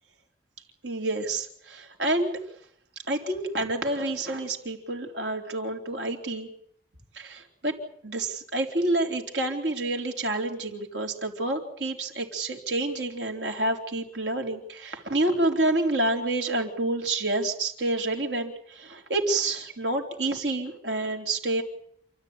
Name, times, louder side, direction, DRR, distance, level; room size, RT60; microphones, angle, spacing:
voice 1, 0.8-2.4 3.1-6.5 7.1-7.7 8.0-21.6, right 2 dB, 90° right, 2 dB, 3.9 m, -28 dB
28.5 x 13.0 x 9.7 m, 0.70 s
head